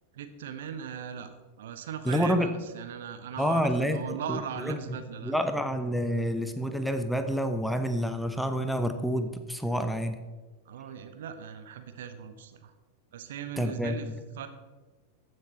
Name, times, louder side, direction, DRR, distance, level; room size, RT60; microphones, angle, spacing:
voice 1, 0.1-5.3 10.7-12.7 13.1-14.1 14.4-14.5, right 8 dB, 60° right, 9 dB, 0.9 m, -39 dB
voice 2, 2.0-2.5 3.4-4.8 5.2-10.2 13.6-14.2, equal, ahead, 8 dB, 0.7 m, -28 dB
14.5 x 6.5 x 4.3 m, 1.3 s
figure-of-eight pair, 90°, 0 cm